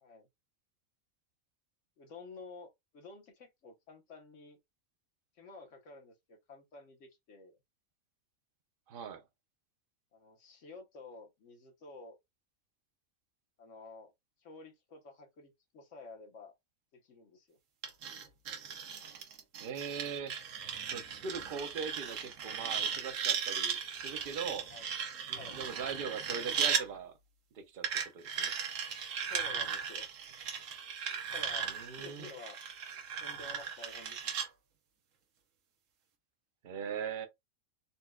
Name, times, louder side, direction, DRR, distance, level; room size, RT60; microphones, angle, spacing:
voice 1, 2.0-4.6 5.4-7.6 10.1-12.2 13.6-14.1 14.4-16.5 16.9-17.6 24.7-24.9 25.3-25.6 29.3-30.1 30.9-31.1 31.3-32.6 33.2-34.4, left 3 dB, 65° left, 1.2 m, -51 dB
voice 2, 8.9-9.2 19.6-20.4 20.9-24.7 25.3-27.2 27.5-27.9 28.1-28.5 31.6-32.3 36.6-37.3, right 6 dB, 55° right, 0.7 m, -40 dB
sound 1, 17.8-26.9 27.8-34.5, right 7 dB, 70° right, 1.1 m, -37 dB
4.1 x 2.2 x 2.3 m
omnidirectional pair, 1.4 m